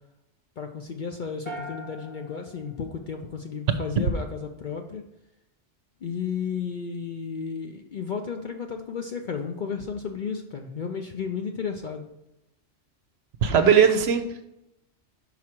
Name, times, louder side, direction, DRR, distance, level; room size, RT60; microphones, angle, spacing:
voice 1, 0.6-5.1 6.0-12.1, left 6 dB, 55° left, 4 dB, 0.6 m, -33 dB
sound 1, 1.5-3.7, right 1 dB, 10° left, 0.9 m, -42 dB
voice 2, 13.4-14.4, right 7 dB, 65° right, 8 dB, 0.8 m, -19 dB
5.8 x 4.8 x 4.3 m, 0.89 s
omnidirectional pair, 1.2 m